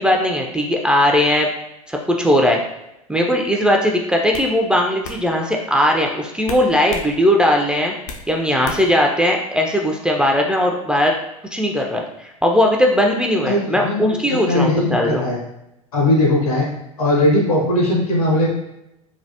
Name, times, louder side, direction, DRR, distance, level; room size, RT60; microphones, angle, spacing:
voice 1, 0.0-1.5 1.9-2.6 3.1-7.9 8.3-11.1 11.5-15.2, left 1 dB, 5° right, 0 dB, 0.3 m, -18 dB
sound 1, 3.5-3.7 4.3-4.5 5.0-5.2 6.4-7.1 7.5-8.3 8.6-9.0, left 4 dB, 65° left, 0.5 m, -33 dB
voice 2, 13.5-14.0 14.5-15.4 15.9-16.7 17.0-18.5, left 1 dB, 80° left, -2 dB, 1.1 m, -18 dB
3.2 x 2.0 x 2.7 m, 0.84 s
hypercardioid pair, 85°, 18 cm